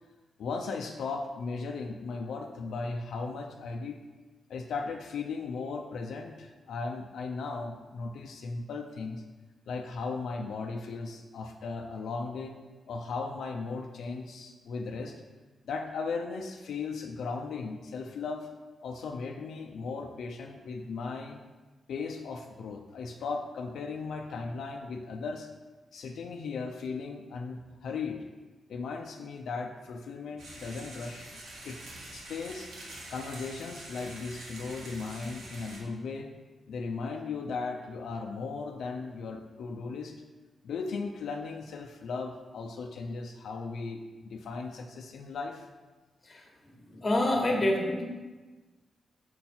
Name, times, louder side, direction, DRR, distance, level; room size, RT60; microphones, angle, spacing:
voice 1, 0.4-4.0 4.5-9.2 9.7-12.5 12.9-15.2 15.7-18.5 18.8-21.4 21.9-25.5 25.9-28.2 28.7-31.8 32.1-32.7 33.1-36.3 36.7-40.1 40.6-45.7, left 4 dB, 80° left, 2 dB, 0.5 m, -37 dB
sound 1, 30.4-35.8, right 1 dB, 75° right, 1.7 m, -45 dB
voice 2, 46.9-48.0, left 1 dB, 25° left, 1 dB, 1.3 m, -27 dB
6.5 x 5.7 x 4.3 m, 1.3 s
wide cardioid pair, 165°, 0 cm